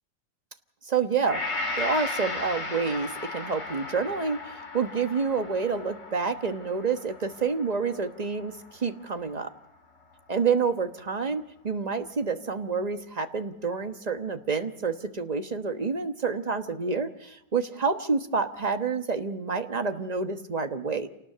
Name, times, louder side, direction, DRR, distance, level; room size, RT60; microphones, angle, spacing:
voice 1, 0.8-1.4 1.8-9.5 10.3-21.1, right 5 dB, 25° right, 7 dB, 1.0 m, -28 dB
Gong, 1.2-9.6 10.0-10.1, left 2 dB, 75° left, 3.7 m, -36 dB
28.0 x 19.0 x 6.7 m, 0.85 s
omnidirectional pair, 1.9 m